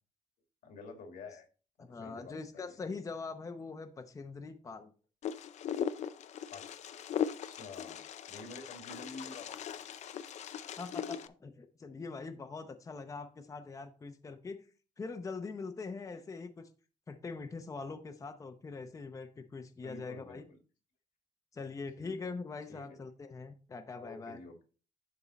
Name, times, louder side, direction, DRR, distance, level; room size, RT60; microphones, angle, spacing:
voice 1, 0.6-1.5 1.8-2.7 6.5-6.7 7.4-10.0 16.1-16.2 19.8-20.6 22.0-22.3 22.7-23.0 24.0-24.6, left 3 dB, 90° left, 4 dB, 2.1 m, -49 dB
voice 2, 1.8-4.9 10.8-14.7 15.0-16.7 17.1-20.4 21.5-24.4, left 4 dB, 25° left, 6 dB, 0.7 m, -43 dB
Wind, 5.2-11.3, left 9 dB, 60° left, 0.5 m, -39 dB
11.0 x 3.7 x 4.1 m, 0.37 s
cardioid pair, 130°, 13 cm